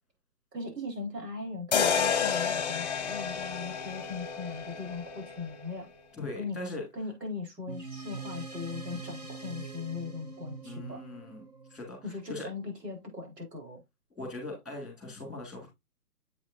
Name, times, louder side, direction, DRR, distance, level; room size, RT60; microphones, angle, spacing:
voice 1, 0.5-5.9 6.4-6.6 6.9-11.1 12.0-13.8, left 4 dB, 85° right, 4.3 m, -39 dB
sound 1, 1.7-5.8, left 6 dB, 25° left, 0.9 m, -30 dB
voice 2, 6.2-6.8 10.6-11.4 11.7-12.5 14.2-15.7, left 2 dB, ahead, 2.0 m, -40 dB
sound 2, 7.7-12.5, right 4 dB, 25° right, 0.6 m, -43 dB
7.9 x 6.2 x 2.6 m
hypercardioid pair, 160°, 47 cm